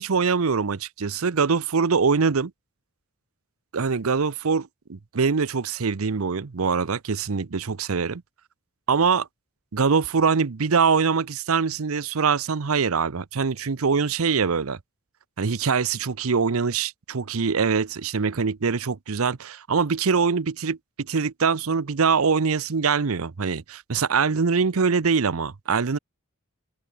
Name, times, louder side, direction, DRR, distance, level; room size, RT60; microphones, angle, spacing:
voice 1, 0.0-2.5 3.7-8.2 8.9-9.3 9.7-14.8 15.4-26.0, right 5 dB, 85° right, 0.7 m, -23 dB
open air
head